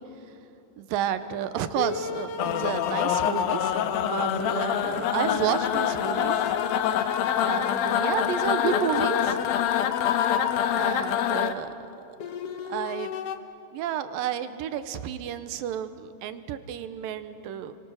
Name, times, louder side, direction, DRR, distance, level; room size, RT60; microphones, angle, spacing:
voice 1, 0.8-6.4 7.4-9.5 10.8-11.7 12.1-12.2 12.6-13.2 13.7-17.8, right 9 dB, 80° right, 11 dB, 2.6 m, -31 dB
sound 1, 1.2-4.8 5.3-11.4 12.2-13.4, left 6 dB, 65° left, 1.5 m, -33 dB
sound 2, 2.4-11.5, left 10 dB, 85° left, 2.7 m, -26 dB
29.5 x 24.0 x 6.4 m, 2.7 s
omnidirectional pair, 4.1 m